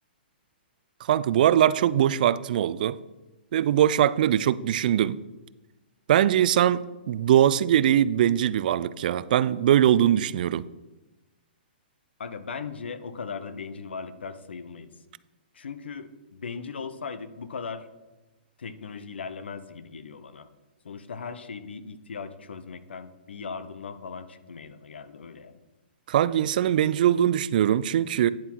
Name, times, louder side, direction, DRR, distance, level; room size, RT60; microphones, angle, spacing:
voice 1, 1.1-3.0 3.5-5.2 6.1-10.7 26.1-28.3, right 11 dB, 55° right, 0.4 m, -21 dB
voice 2, 12.2-14.9 15.5-17.9 18.6-20.5 20.8-25.5, left 5 dB, 90° left, 0.9 m, -38 dB
10.0 x 7.4 x 4.6 m
hypercardioid pair, 150°, 6 cm